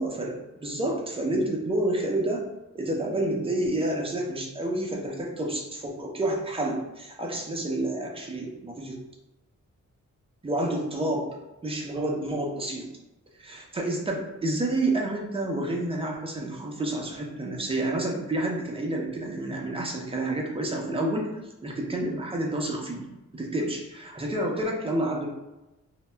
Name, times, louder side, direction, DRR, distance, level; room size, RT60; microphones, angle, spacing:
voice 1, 0.0-2.5 2.7-9.0 10.4-11.3 11.6-12.8 13.4-21.3 21.6-25.3, right 1 dB, 20° right, 0 dB, 0.4 m, -29 dB
2.6 x 2.1 x 3.2 m, 1.0 s
wide cardioid pair, 165°, 30 cm